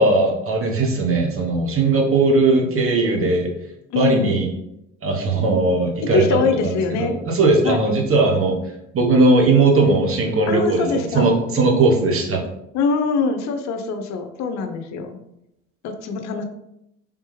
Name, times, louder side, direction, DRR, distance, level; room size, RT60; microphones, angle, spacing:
voice 1, 0.0-3.5 3.9-4.5 5.0-8.6 8.9-12.4, right 2 dB, 40° right, 1 dB, 1.0 m, -18 dB
voice 2, 3.9-4.5 6.1-7.2 7.6-7.8 10.5-11.4 12.7-15.2 15.8-16.4, left 5 dB, 50° left, 6 dB, 0.6 m, -23 dB
3.4 x 3.2 x 3.1 m, 0.82 s
hypercardioid pair, 70°, 36 cm